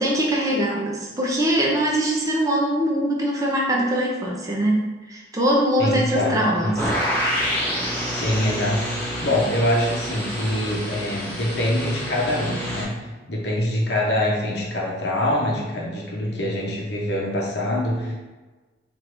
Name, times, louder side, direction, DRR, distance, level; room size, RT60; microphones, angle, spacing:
voice 1, 0.0-6.9, equal, 20° right, -2 dB, 0.6 m, -22 dB
voice 2, 5.8-6.8 8.1-18.1, left 1 dB, 65° left, -3 dB, 0.8 m, -24 dB
sound 1, 6.8-12.8, equal, 10° left, 0.9 m, -27 dB
4.6 x 2.6 x 3.3 m, 1.2 s
head